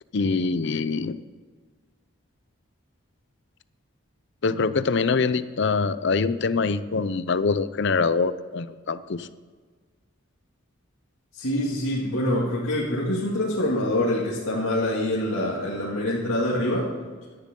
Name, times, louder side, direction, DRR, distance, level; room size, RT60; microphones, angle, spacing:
voice 1, 0.1-1.2 4.4-9.3, left 4 dB, 55° left, 14 dB, 0.5 m, -24 dB
voice 2, 11.3-16.9, left 1 dB, 90° left, -6 dB, 2.3 m, -25 dB
17.0 x 11.0 x 3.8 m, 1.5 s
head